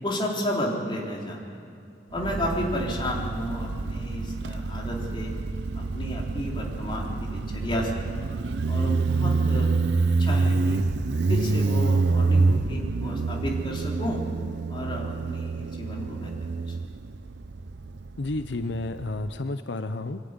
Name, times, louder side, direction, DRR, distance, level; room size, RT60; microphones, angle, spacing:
voice 1, 0.0-1.6 2.1-5.3 5.8-8.0 8.7-9.8 10.0-10.8 11.3-14.2 14.7-16.3 16.7-16.8, equal, 30° left, -2 dB, 3.7 m, -32 dB
Motorcycle, 2.2-19.4, right 3 dB, 65° right, 0.6 m, -27 dB
voice 2, 18.2-20.2, left 2 dB, 85° left, 9 dB, 0.7 m, -31 dB
25.0 x 12.0 x 9.7 m, 2.6 s
head